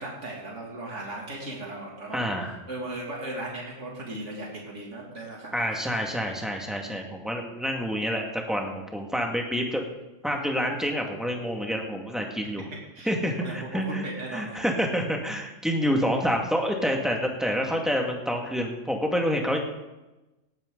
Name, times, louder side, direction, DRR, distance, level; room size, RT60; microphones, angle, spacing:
voice 1, 0.0-5.8 12.7-14.6, right 1 dB, 65° right, -2 dB, 3.1 m, -37 dB
voice 2, 2.1-2.5 5.5-9.8 10.2-12.6 13.1-14.0 14.3-19.6, equal, ahead, 1 dB, 2.0 m, -28 dB
18.0 x 11.5 x 4.0 m, 1.0 s
omnidirectional pair, 1.3 m